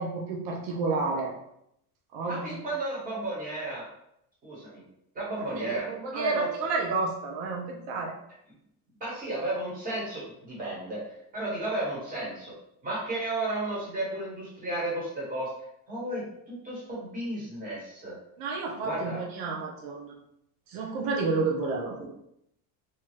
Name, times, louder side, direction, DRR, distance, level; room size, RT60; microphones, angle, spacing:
voice 1, 0.0-1.3 2.1-2.6 5.5-8.1 18.4-20.2 20.7-22.0, right 3 dB, 90° right, 0 dB, 0.7 m, -30 dB
voice 2, 2.3-3.8 4.4-4.8 5.1-5.9 6.1-6.5 9.0-11.0 11.3-12.5 12.8-15.5 15.9-18.1 18.8-19.2 20.7-20.8 22.0-22.1, right 2 dB, 20° right, -6 dB, 1.2 m, -33 dB
2.8 x 2.3 x 3.2 m, 0.77 s
cardioid pair, 165°, 39 cm